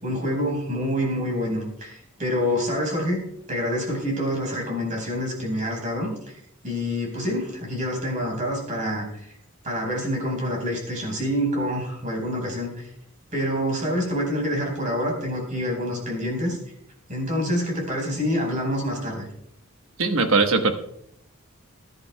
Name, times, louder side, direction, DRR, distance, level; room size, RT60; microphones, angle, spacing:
voice 1, 0.0-3.2 3.5-6.4 6.6-9.3 9.6-12.9 13.3-16.6 17.1-19.3, equal, 35° right, 0 dB, 4.6 m, -27 dB
voice 2, 20.0-20.7, right 3 dB, 65° right, 6 dB, 1.2 m, -20 dB
21.5 x 11.0 x 2.3 m, 0.72 s
head